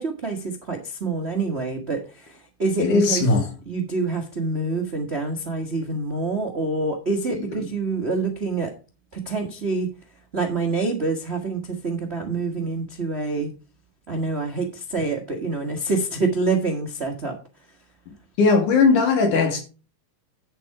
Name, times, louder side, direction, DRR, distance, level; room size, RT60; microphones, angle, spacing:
voice 1, 0.0-3.2 3.7-8.7 9.1-9.9 10.3-13.5 14.1-17.4, right 3 dB, 75° right, 0.6 m, -26 dB
voice 2, 2.8-3.5 18.4-19.6, left 4 dB, 65° left, 3.7 m, -18 dB
9.8 x 7.5 x 4.7 m
omnidirectional pair, 3.9 m